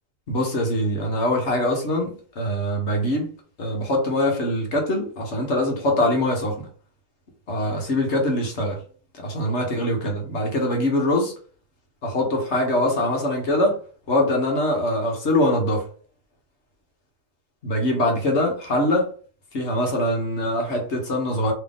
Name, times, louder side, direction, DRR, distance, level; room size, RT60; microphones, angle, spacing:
voice 1, 0.3-3.3 3.6-6.7 7.5-8.8 9.2-11.3 12.0-13.8 14.1-15.9 17.6-19.1 19.5-21.5, left 1 dB, 55° left, 1.4 m, -23 dB
3.8 x 3.3 x 3.5 m
omnidirectional pair, 1.5 m